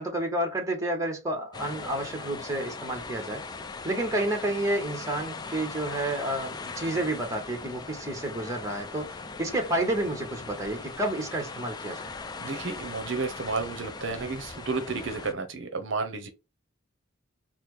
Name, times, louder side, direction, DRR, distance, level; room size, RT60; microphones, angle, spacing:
voice 1, 0.0-3.4 3.8-12.1, right 1 dB, 15° right, 1.0 m, -30 dB
sound 1, 1.5-15.3, left 4 dB, 20° left, 0.3 m, -40 dB
voice 2, 12.4-16.3, right 4 dB, 65° right, 0.7 m, -32 dB
4.1 x 2.1 x 3.1 m
head